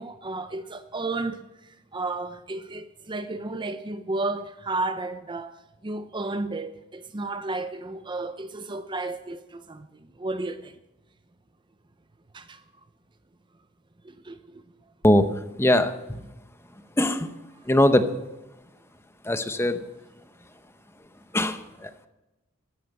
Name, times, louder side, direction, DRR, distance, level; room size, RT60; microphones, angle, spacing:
voice 1, 0.0-1.5 1.9-5.5 5.8-9.9 10.2-10.7 12.3-12.6 14.0-14.6, right 2 dB, 20° right, 0.6 m, -32 dB
voice 2, 15.6-15.9 17.0-17.3 17.7-18.1 19.3-19.8 21.3-22.1, left 1 dB, 10° left, 0.8 m, -21 dB
14.0 x 12.0 x 7.6 m
head